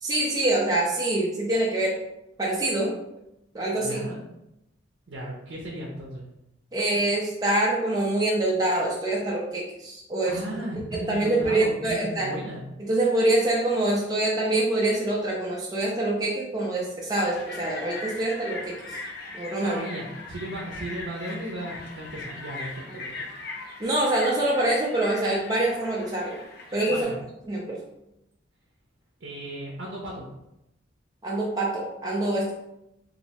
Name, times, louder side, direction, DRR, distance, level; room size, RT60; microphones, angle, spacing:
voice 1, 0.0-2.0 2.4-3.0 3.5-4.1 6.7-10.4 11.1-12.3 12.8-18.9 19.3-19.8 22.9-23.0 23.8-26.4 26.7-27.1 27.5-27.8 31.2-32.5, right 1 dB, 20° right, -4 dB, 0.4 m, -25 dB
voice 2, 3.7-4.2 5.1-6.2 10.2-12.7 19.6-23.2 26.8-27.2 29.2-30.2, right 1 dB, 65° right, -2 dB, 0.6 m, -35 dB
przed cyrkiem, 17.2-27.0, left 3 dB, 55° left, 0.5 m, -39 dB
3.1 x 2.6 x 2.8 m, 0.87 s
head